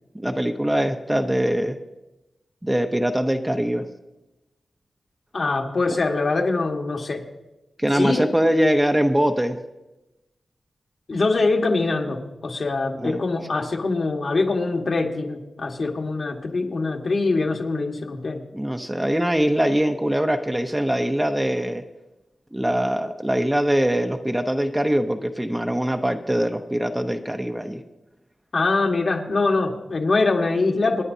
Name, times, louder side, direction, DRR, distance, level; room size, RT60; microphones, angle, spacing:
voice 1, 0.1-1.8 2.6-3.9 7.8-9.6 13.0-13.2 18.5-21.8 22.5-27.8, equal, 10° right, 6 dB, 0.7 m, -22 dB
voice 2, 5.3-7.2 7.9-8.3 11.1-18.4 28.5-31.0, left 3 dB, 55° left, 2 dB, 1.6 m, -23 dB
26.5 x 9.9 x 2.8 m, 1.0 s
wide cardioid pair, 85°, 0 cm